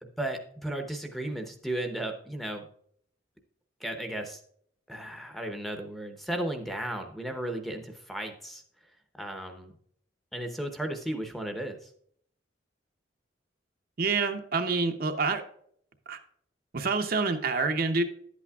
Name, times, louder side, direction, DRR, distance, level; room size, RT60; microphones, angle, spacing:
voice 1, 0.0-2.7 3.8-4.4 4.9-8.6 9.2-9.7 10.3-11.9, right 1 dB, ahead, 3 dB, 0.7 m, -35 dB
voice 2, 14.0-15.4 16.1-16.2 16.7-18.0, right 4 dB, 50° right, 6 dB, 0.7 m, -27 dB
10.5 x 8.3 x 2.3 m, 0.64 s
head